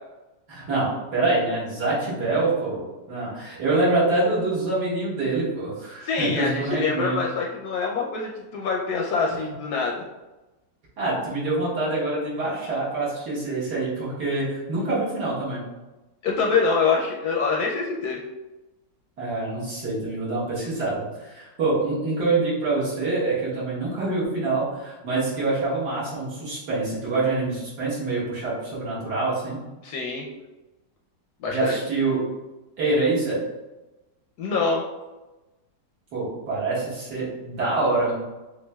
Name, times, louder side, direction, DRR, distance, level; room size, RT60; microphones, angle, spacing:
voice 1, 0.5-7.2 9.4-9.5 11.0-15.7 19.2-29.6 31.5-32.2 32.8-33.4 36.1-38.1, right 2 dB, 65° right, -8 dB, 2.0 m, -25 dB
voice 2, 6.0-9.9 16.2-18.2 29.8-30.3 31.4-31.7 34.4-34.8, left 4 dB, 70° left, -1 dB, 1.0 m, -25 dB
7.1 x 2.5 x 2.2 m, 1.1 s
omnidirectional pair, 2.0 m